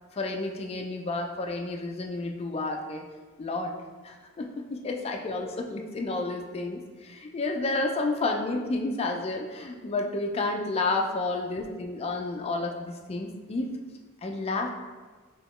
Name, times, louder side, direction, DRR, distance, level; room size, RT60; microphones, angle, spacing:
voice 1, 0.2-3.0 3.4-3.8 4.0-13.8 14.2-14.7, left 2 dB, 30° left, 2 dB, 0.3 m, -31 dB
4.1 x 2.9 x 3.0 m, 1.4 s
head